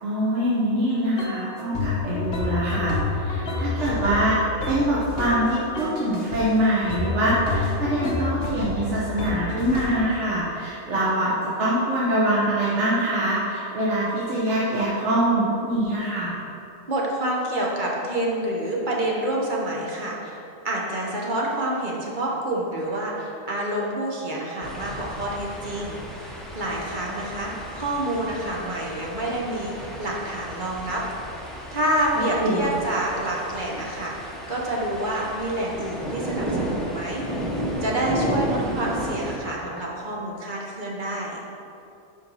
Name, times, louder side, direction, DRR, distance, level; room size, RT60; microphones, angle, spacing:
voice 1, 0.0-4.4 4.7-16.4 32.1-32.6, right 1 dB, 65° right, -7 dB, 1.3 m, -24 dB
sound 1, 1.2-1.4 1.7-5.5 5.7-6.5 6.9-10.1, left 3 dB, 50° left, 1.1 m, -28 dB
voice 2, 16.9-20.4 20.6-31.0 31.3-31.4 31.7-37.3 37.8-41.4, right 1 dB, 40° right, -3 dB, 1.0 m, -28 dB
sound 2, 24.6-39.4, right 1 dB, ahead, 0.4 m, -33 dB
5.5 x 4.4 x 5.4 m, 2.7 s
omnidirectional pair, 1.3 m